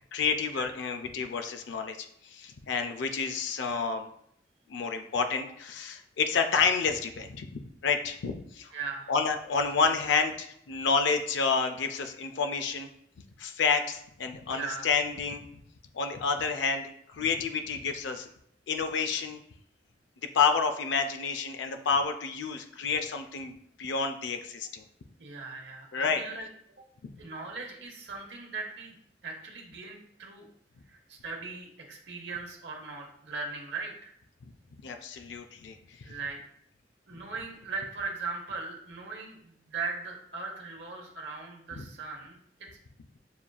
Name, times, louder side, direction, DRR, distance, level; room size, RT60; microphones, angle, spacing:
voice 1, 0.1-4.1 4.7-8.7 9.1-12.9 13.4-15.4 15.9-18.3 18.7-19.4 20.3-24.8 25.9-26.2 34.8-36.1 41.8-41.9, left 5 dB, 85° left, 6 dB, 0.4 m, -29 dB
voice 2, 8.7-9.1 14.5-14.9 25.2-26.5 27.2-29.0 29.2-30.5 30.9-34.1 36.0-36.4 37.1-42.4, right 4 dB, 80° right, 1 dB, 0.9 m, -39 dB
6.9 x 2.4 x 2.3 m, 0.70 s
head